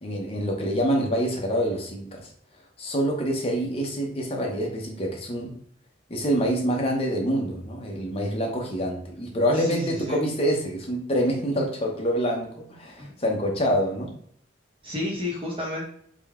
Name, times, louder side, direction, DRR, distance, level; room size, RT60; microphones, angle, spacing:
voice 1, 0.0-2.3 2.8-5.5 6.1-14.1, equal, 30° left, 0 dB, 0.7 m, -26 dB
voice 2, 9.5-10.2 13.0-13.1 14.8-15.8, left 2 dB, 25° right, -3 dB, 0.8 m, -31 dB
3.7 x 2.2 x 3.5 m, 0.65 s
head